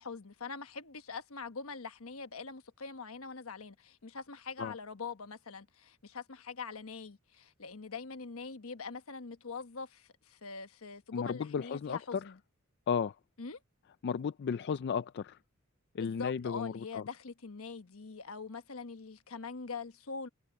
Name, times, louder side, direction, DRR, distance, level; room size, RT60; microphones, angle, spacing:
voice 1, 0.0-12.4 13.4-13.6 16.0-20.3, left 5 dB, 75° left, 1.2 m, -43 dB
voice 2, 11.1-12.2 12.9-13.1 14.0-15.4 15.9-17.0, left 6 dB, 50° left, 0.3 m, -34 dB
head